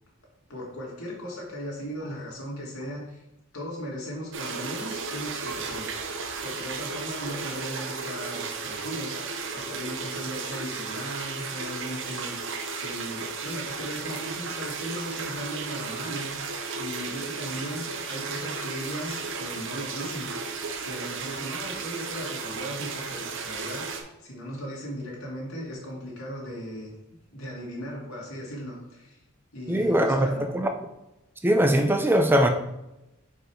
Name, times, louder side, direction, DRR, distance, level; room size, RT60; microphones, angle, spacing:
voice 1, 0.5-3.2 3.5-5.9 6.4-9.2 9.5-12.4 12.7-20.3 20.8-27.0 27.3-29.2 29.5-30.5, equal, 85° left, 1.8 m, -37 dB
sound 1, 4.3-24.0, right 4 dB, 65° right, 0.8 m, -34 dB
voice 2, 29.7-30.3 30.5-30.7 31.4-32.5, equal, 10° right, 0.4 m, -21 dB
5.0 x 4.6 x 4.4 m
head